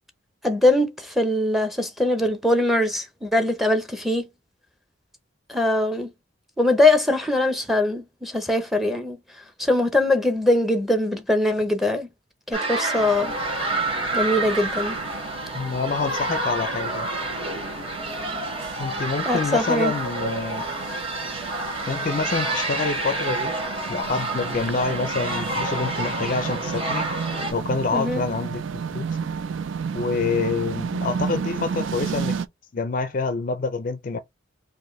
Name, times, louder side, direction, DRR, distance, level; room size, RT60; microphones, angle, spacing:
voice 1, 0.4-4.3 5.5-6.1 6.6-9.2 9.6-12.1 12.5-13.3 14.1-14.9 19.3-19.9 27.9-28.2, left 1 dB, ahead, 0.6 m, -22 dB
sound 1, 12.5-27.5, right 2 dB, 30° right, 2.1 m, -28 dB
sound 2, 13.0-32.5, right 6 dB, 70° right, 0.4 m, -33 dB
voice 2, 15.5-17.1 18.8-20.6 21.9-23.5 23.9-27.1 27.5-29.1 29.9-32.4 32.7-34.2, left 4 dB, 40° left, 0.4 m, -27 dB
4.5 x 2.5 x 3.1 m
head